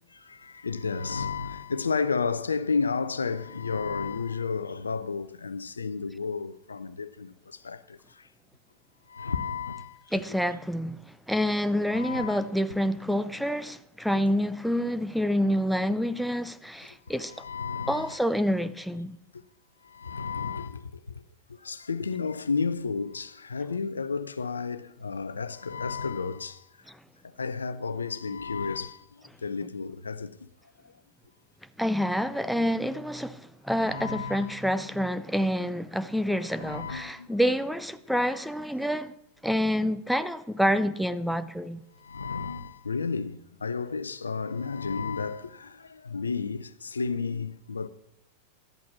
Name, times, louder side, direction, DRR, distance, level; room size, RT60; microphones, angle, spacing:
voice 1, 0.1-8.3 9.1-10.2 11.9-12.5 17.2-18.2 19.8-21.2 21.5-26.7 27.2-30.5 30.8-30.9 33.8-34.6 36.6-37.3 42.0-47.9, left 5 dB, 75° left, 0.5 m, -32 dB
voice 2, 10.1-17.4 17.9-19.1 31.8-39.1 39.4-41.8, equal, ahead, 0.5 m, -27 dB
12.0 x 8.4 x 7.2 m
figure-of-eight pair, 90°, 0 cm